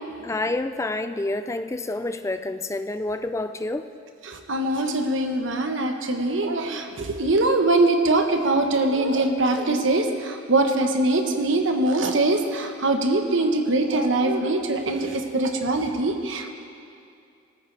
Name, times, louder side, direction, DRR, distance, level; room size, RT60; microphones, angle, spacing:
voice 1, 0.2-3.9, left 2 dB, 15° left, 10 dB, 0.4 m, -28 dB
voice 2, 4.3-16.5, right 2 dB, 70° right, 4 dB, 1.1 m, -22 dB
19.0 x 14.5 x 3.3 m, 2.5 s
head